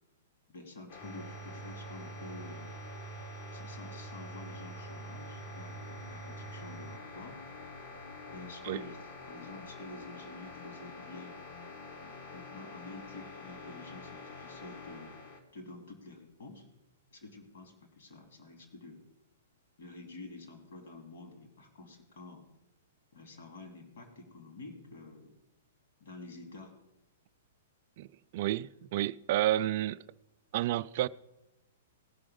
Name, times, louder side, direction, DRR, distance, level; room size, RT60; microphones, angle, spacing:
voice 1, 0.5-2.7 3.5-7.4 8.3-9.0 9.3-11.4 12.3-15.2 15.5-16.6 17.1-19.0 19.8-22.4 23.1-25.4 26.0-26.7, left 2 dB, 60° left, 3.0 m, -49 dB
sound 1, 0.9-15.4, left 3 dB, 40° left, 1.6 m, -47 dB
sound 2, 1.0-7.0, right 6 dB, 5° right, 0.8 m, -46 dB
voice 2, 28.3-30.0 30.5-31.1, right 14 dB, 50° right, 0.3 m, -30 dB
18.5 x 6.1 x 5.0 m
figure-of-eight pair, 110°, 0 cm